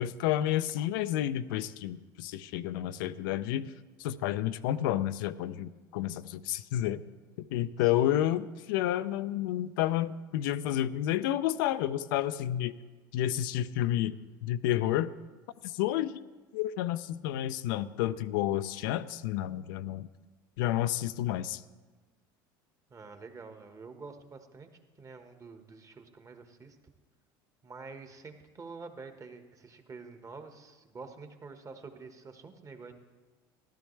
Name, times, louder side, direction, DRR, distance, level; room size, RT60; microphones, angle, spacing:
voice 1, 0.0-3.7 4.0-7.0 7.4-12.7 13.1-14.1 14.4-15.1 15.6-16.2 16.5-20.1 20.6-21.6, left 12 dB, 75° left, 13 dB, 0.4 m, -30 dB
voice 2, 7.8-8.1 22.9-24.7 25.0-26.8 27.6-32.9, right 4 dB, 30° right, 7 dB, 1.3 m, -47 dB
14.0 x 12.0 x 3.2 m, 1.3 s
hypercardioid pair, 80°, 11 cm